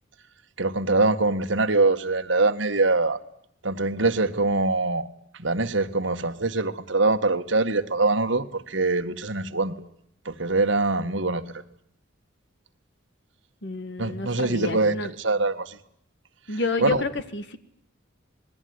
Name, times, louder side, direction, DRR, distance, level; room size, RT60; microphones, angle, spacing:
voice 1, 0.6-3.2 3.6-5.1 5.4-9.7 10.2-11.4 14.0-15.8 16.8-17.0, right 3 dB, 65° right, 1.8 m, -23 dB
voice 2, 13.6-15.1 16.5-17.6, left 2 dB, 60° left, 2.2 m, -29 dB
27.0 x 21.5 x 9.7 m
head